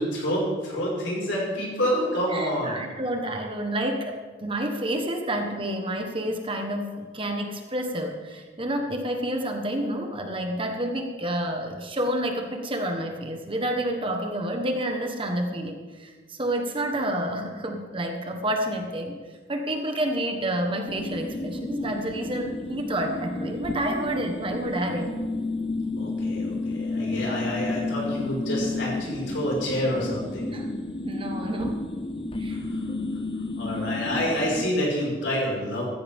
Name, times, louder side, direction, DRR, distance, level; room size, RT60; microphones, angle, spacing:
voice 1, 0.0-2.8 26.0-30.5 32.5-32.8 33.6-35.8, equal, 75° left, -3 dB, 5.2 m, -28 dB
voice 2, 2.3-19.2 19.5-25.1 30.5-30.7 31.0-31.8 32.4-32.6 32.9-33.0, right 1 dB, 25° right, 3 dB, 1.3 m, -29 dB
sound 1, 20.9-34.7, left 2 dB, 30° left, 0.6 m, -31 dB
15.0 x 14.5 x 3.6 m, 1.4 s
head